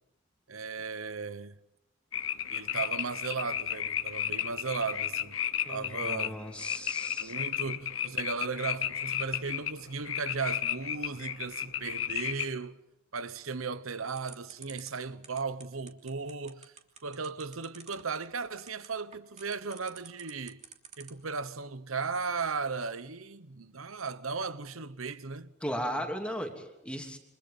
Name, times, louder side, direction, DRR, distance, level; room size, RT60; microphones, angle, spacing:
voice 1, 0.5-1.6 2.5-5.4 5.7-6.4 7.2-12.8 13.1-16.7 17.0-20.6 21.0-25.5, right 4 dB, 85° right, 1.1 m, -36 dB
sound 1, 2.1-12.5, left 10 dB, 75° left, 1.1 m, -34 dB
voice 2, 5.6-7.3 25.6-27.2, equal, 5° left, 3.1 m, -36 dB
sound 2, 14.2-21.3, right 6 dB, 35° right, 3.1 m, -49 dB
29.5 x 26.5 x 5.5 m
head